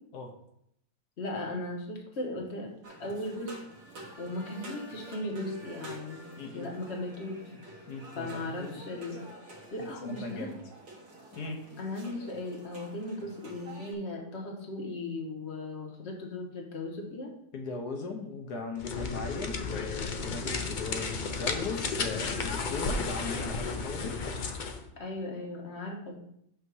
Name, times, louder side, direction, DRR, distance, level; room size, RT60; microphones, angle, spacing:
voice 1, 1.2-2.7 3.0-3.5 4.2-6.2 6.5-7.4 8.2-9.3 9.7-10.5 11.8-17.3 25.0-26.2, left 2 dB, 45° left, -1 dB, 1.6 m, -37 dB
sound 1, 2.8-13.9, right 1 dB, 80° right, 1.9 m, -48 dB
voice 2, 6.4-6.7 7.9-8.8 10.0-10.6 11.3-11.6 17.5-24.2, left 3 dB, 85° left, 2 dB, 1.5 m, -38 dB
sound 2, 18.8-24.8, left 4 dB, 60° left, 0.5 m, -33 dB
8.3 x 2.8 x 6.2 m, 0.75 s
omnidirectional pair, 1.7 m